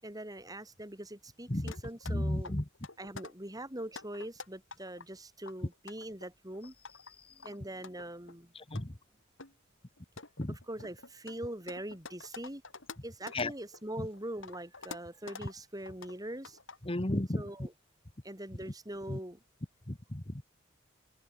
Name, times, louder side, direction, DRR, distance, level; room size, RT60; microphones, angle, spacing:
voice 1, 0.0-2.6 3.0-6.7 7.3-8.5 10.5-12.6 13.0-16.6 17.4-17.7 18.2-19.4, right 1 dB, 20° right, 7.9 m, -42 dB
sound 1, 1.7-2.1 2.4-3.3 3.8-5.0 5.4-7.1 7.4-8.3 8.7-8.8 9.4-9.5 10.0-13.8 14.1-15.5 15.9-16.2 16.4-16.8, left 4 dB, 70° left, 7.0 m, -47 dB
voice 2, 2.1-2.6 8.7-8.9 10.4-10.6 13.3-13.5 16.8-17.4 19.1-19.2 19.9-20.4, left 1 dB, 30° left, 1.5 m, -33 dB
head